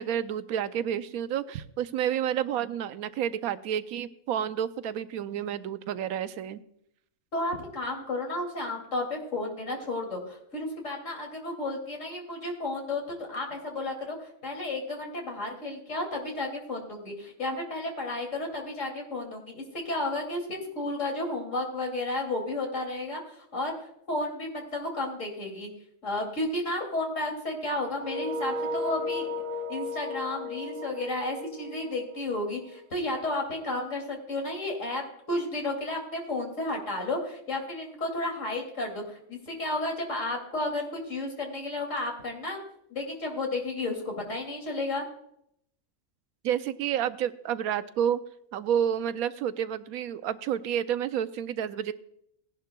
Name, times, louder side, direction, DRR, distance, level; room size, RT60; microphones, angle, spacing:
voice 1, 0.0-6.6 46.4-48.2 48.5-51.9, right 9 dB, 90° right, 13 dB, 1.1 m, -30 dB
voice 2, 7.3-23.7 24.1-25.7 26.0-29.3 29.7-35.0 35.3-42.6 42.9-45.1, left 2 dB, 60° left, 2 dB, 2.9 m, -32 dB
sound 1, 27.9-32.8, left 2 dB, 25° right, 0.9 m, -35 dB
18.0 x 11.0 x 2.2 m, 0.74 s
omnidirectional pair, 1.5 m